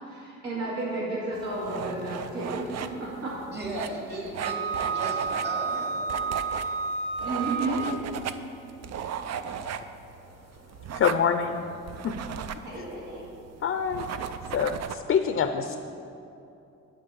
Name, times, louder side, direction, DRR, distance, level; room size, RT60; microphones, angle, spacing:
voice 1, 0.1-3.3 7.2-7.9 12.6-13.2, right 2 dB, 75° right, -6 dB, 2.1 m, -32 dB
sound 1, 1.3-14.9, right 8 dB, 60° right, 0.5 m, -37 dB
voice 2, 3.5-6.4, right 1 dB, 35° right, -1 dB, 2.5 m, -37 dB
Wind instrument woodwind instrument, 4.4-8.0, right 5 dB, 15° right, 1.2 m, -30 dB
voice 3, 10.9-11.7 12.0-12.2 12.8-12.9 13.6-14.1 14.5-15.8, left 7 dB, 45° left, 8 dB, 0.5 m, -26 dB
10.5 x 4.2 x 7.8 m, 2.7 s
cardioid pair, 85°, 29 cm